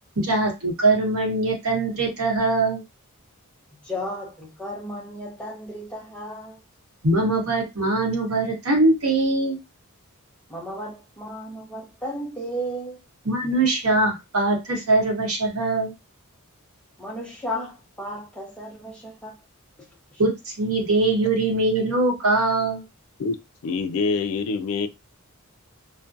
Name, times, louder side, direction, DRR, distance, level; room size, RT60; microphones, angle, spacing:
voice 1, 0.2-2.8 7.0-9.6 13.2-15.9 20.2-22.8, right 2 dB, 70° right, 1.0 m, -22 dB
voice 2, 3.8-6.6 10.5-13.0 17.0-19.4, equal, 5° left, 0.7 m, -34 dB
voice 3, 23.6-24.9, left 4 dB, 65° left, 0.3 m, -25 dB
2.4 x 2.2 x 2.5 m
head